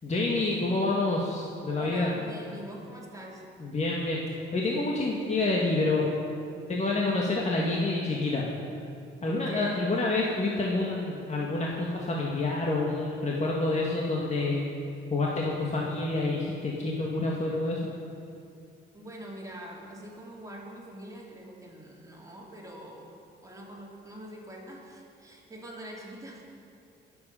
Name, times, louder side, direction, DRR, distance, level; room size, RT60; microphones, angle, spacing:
voice 1, 0.0-2.1 3.6-4.2 4.5-6.1 6.7-8.5 9.2-14.7 15.1-17.9, left 2 dB, 35° left, -3 dB, 1.8 m, -28 dB
voice 2, 1.7-3.4 9.3-9.8 18.9-23.1 23.4-26.4, right 1 dB, 15° right, -3 dB, 3.0 m, -44 dB
21.5 x 8.0 x 5.6 m, 2.5 s
cardioid pair, 90°, 20 cm